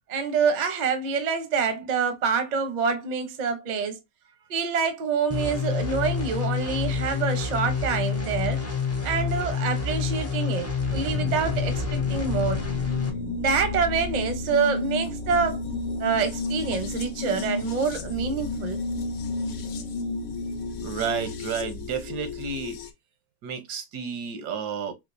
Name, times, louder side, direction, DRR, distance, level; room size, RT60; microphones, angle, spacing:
voice 1, 0.1-4.0 4.5-8.6 9.0-12.6 13.4-15.6 16.0-18.8, right 5 dB, 45° right, 0.5 m, -26 dB
sound 1, 5.3-13.1, left 5 dB, 20° left, 0.4 m, -28 dB
sound 2, 10.9-22.9, left 3 dB, 70° left, 1.0 m, -32 dB
voice 2, 20.8-22.8 23.4-24.9, right 6 dB, 85° right, 1.3 m, -31 dB
4.3 x 2.4 x 2.5 m
omnidirectional pair, 1.7 m